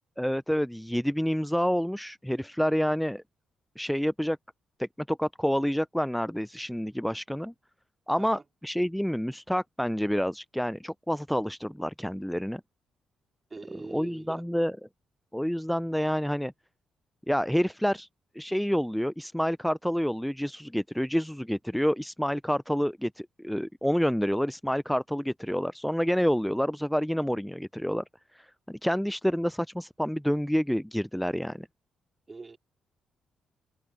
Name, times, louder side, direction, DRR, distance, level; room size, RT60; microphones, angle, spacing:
voice 1, 0.2-3.2 3.8-4.4 4.8-7.5 8.1-12.6 13.9-14.8 15.3-16.5 17.3-18.1 18.3-28.0 28.3-31.7, equal, ahead, 0.9 m, -28 dB
voice 2, 13.5-14.4 32.3-32.6, right 3 dB, 30° right, 4.4 m, -43 dB
open air
figure-of-eight pair, 40°, 0 cm